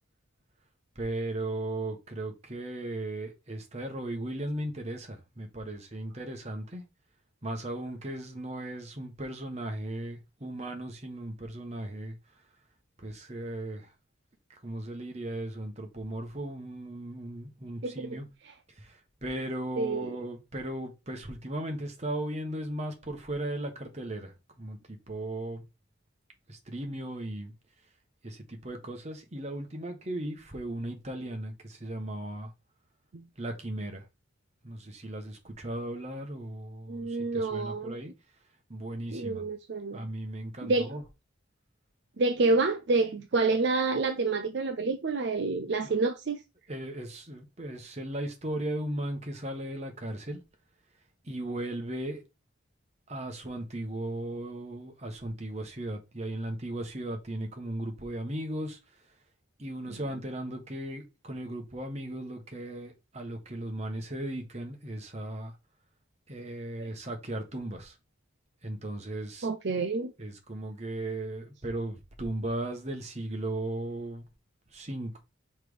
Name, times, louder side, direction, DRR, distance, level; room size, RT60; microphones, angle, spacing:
voice 1, 0.9-6.8 7.4-12.2 13.0-13.9 14.5-18.2 18.8-24.3 24.6-25.6 26.5-27.5 28.2-32.5 33.4-34.0 34.6-38.1 38.7-39.5 39.9-41.0 45.8-45.9 46.7-50.4 51.2-52.2 53.1-58.8 59.6-65.5 66.3-67.9 68.6-69.5 70.2-74.3 74.7-75.2, right 1 dB, 35° right, 1.2 m, -36 dB
voice 2, 17.8-18.2 19.8-20.2 33.1-33.2 36.9-38.0 39.1-40.0 40.6-40.9 42.2-46.4 66.8-66.9 69.4-70.1, right 3 dB, 55° right, 0.5 m, -28 dB
5.9 x 3.2 x 4.9 m
head